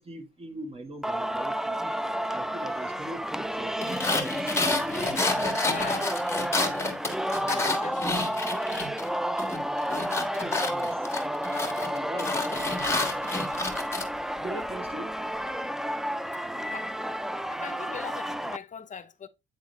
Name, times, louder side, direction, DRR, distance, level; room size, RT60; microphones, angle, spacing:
voice 1, 0.0-1.9 2.3-4.7 7.4-7.6 10.7-11.1 11.8-13.1 14.4-15.1, right 1 dB, 30° right, 1.4 m, -42 dB
Singing, 1.0-18.6, equal, ahead, 0.3 m, -31 dB
sound 1, 3.8-9.1 9.4-14.1, left 3 dB, 15° left, 1.5 m, -30 dB
voice 2, 5.7-6.1 7.5-8.0 16.6-16.9 17.5-19.3, left 7 dB, 40° left, 0.7 m, -40 dB
8.8 x 3.8 x 3.1 m
cardioid pair, 90°, 20 cm